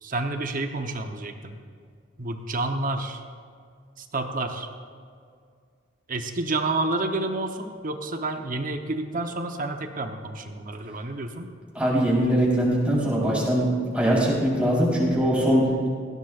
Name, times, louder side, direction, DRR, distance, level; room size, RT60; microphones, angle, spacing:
voice 1, 0.0-1.6 2.2-3.2 4.0-4.7 6.1-11.5, right 2 dB, 45° right, 5 dB, 0.9 m, -29 dB
voice 2, 11.8-13.6 13.9-15.9, equal, 5° right, -6 dB, 3.9 m, -22 dB
18.0 x 16.0 x 2.5 m, 2.2 s
head